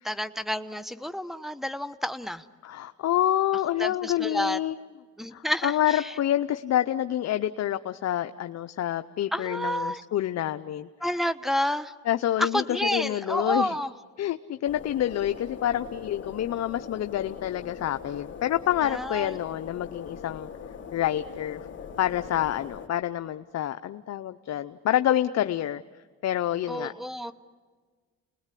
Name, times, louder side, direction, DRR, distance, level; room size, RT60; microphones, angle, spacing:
voice 1, 0.0-2.4 3.8-4.6 5.2-6.1 9.3-10.0 11.0-11.9 12.4-13.9 18.8-19.4 26.7-27.3, equal, ahead, 8 dB, 1.0 m, -29 dB
voice 2, 2.6-4.8 5.3-10.9 12.1-13.8 14.2-20.5 20.9-21.6 22.0-25.8 26.2-26.9, left 12 dB, 60° left, 9 dB, 0.7 m, -27 dB
sound 1, 14.6-22.9, left 6 dB, 40° left, 2.9 m, -41 dB
30.0 x 20.5 x 8.4 m, 1.5 s
cardioid pair, 90°, 30 cm